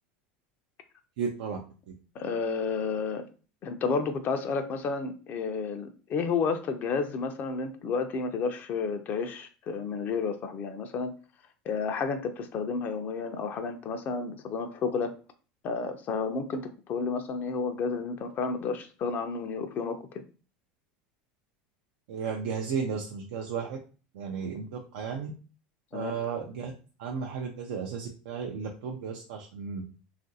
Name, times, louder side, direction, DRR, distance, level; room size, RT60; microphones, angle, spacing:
voice 1, 1.2-1.6 22.1-23.8 24.1-25.3 25.9-26.7 27.0-29.8, right 6 dB, 75° right, 1 dB, 0.4 m, -34 dB
voice 2, 2.1-3.3 3.6-11.1 11.6-15.1 15.6-20.2 25.9-26.1, left 5 dB, 45° left, 7 dB, 0.4 m, -31 dB
2.9 x 2.5 x 2.7 m, 0.36 s
hypercardioid pair, 95°, 4 cm